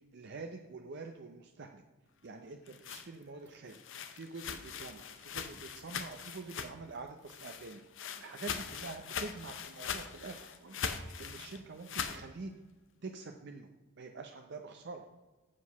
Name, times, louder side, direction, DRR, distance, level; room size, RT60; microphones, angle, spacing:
voice 1, 0.1-1.8 2.2-3.8 4.1-7.8 8.2-12.5 13.0-13.7 14.0-15.1, right 3 dB, 55° right, 4 dB, 0.6 m, -46 dB
sound 1, 2.4-7.0 7.3-12.2, left 7 dB, 60° left, 0.7 m, -41 dB
7.6 x 6.3 x 5.9 m, 1.2 s
head